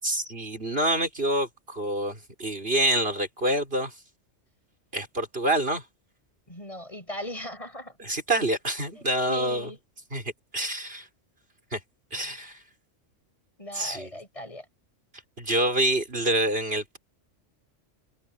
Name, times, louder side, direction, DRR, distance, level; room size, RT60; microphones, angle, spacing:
voice 1, 0.0-3.9 4.9-5.9 8.0-9.7 10.1-11.1 11.7-11.8 12.1-12.6 13.7-14.1 15.4-17.0, right 1 dB, 50° right, 6.3 m, -27 dB
voice 2, 6.5-8.0 8.9-9.0 9.3-9.8 13.6-14.6, equal, 25° left, 8.1 m, -38 dB
omnidirectional pair, 1.3 m